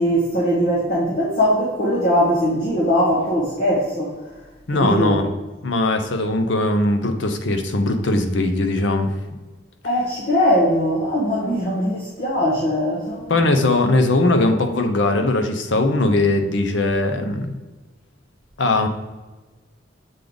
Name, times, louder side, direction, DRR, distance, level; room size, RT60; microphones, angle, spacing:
voice 1, 0.0-4.1 4.7-5.2 9.8-13.3, equal, 45° left, -6 dB, 1.1 m, -20 dB
voice 2, 4.7-5.3 5.6-9.1 13.3-17.6 18.6-18.9, left 2 dB, 70° left, 6 dB, 0.7 m, -20 dB
7.4 x 3.4 x 3.8 m, 1.2 s
head